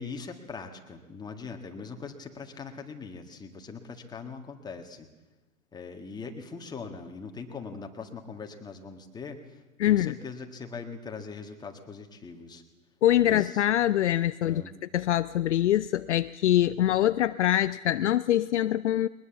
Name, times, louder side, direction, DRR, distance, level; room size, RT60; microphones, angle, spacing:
voice 1, 0.0-5.1 5.7-12.6 13.2-13.6 14.4-14.7, left 4 dB, 10° left, 4 dB, 1.8 m, -41 dB
voice 2, 9.8-10.1 13.0-14.6 14.9-19.1, left 12 dB, 55° left, 14 dB, 0.6 m, -24 dB
21.5 x 20.0 x 7.2 m, 1.2 s
hypercardioid pair, 120°, 42 cm